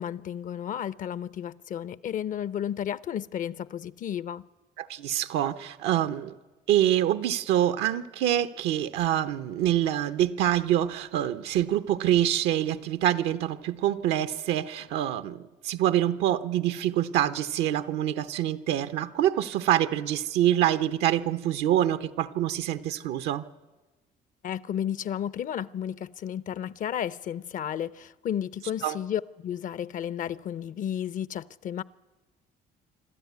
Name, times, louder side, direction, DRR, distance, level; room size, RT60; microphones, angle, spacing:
voice 1, 0.0-4.5 24.4-31.8, left 9 dB, 50° left, 0.6 m, -33 dB
voice 2, 4.8-6.3 6.7-23.4 28.8-29.0, right 12 dB, 85° right, 0.9 m, -26 dB
25.5 x 13.0 x 9.5 m
cardioid pair, 110°, 17 cm